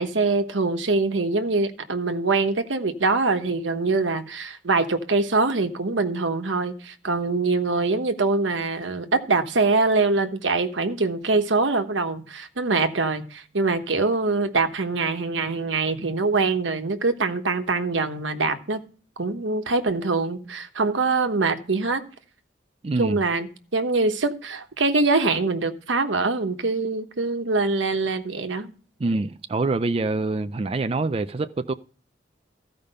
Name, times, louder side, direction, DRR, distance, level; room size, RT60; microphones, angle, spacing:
voice 1, 0.0-18.8 19.2-22.0 23.0-28.7, right 3 dB, 90° right, 1.2 m, -24 dB
voice 2, 22.8-23.2 29.0-31.7, right 3 dB, 30° right, 0.4 m, -25 dB
14.5 x 5.1 x 5.4 m
head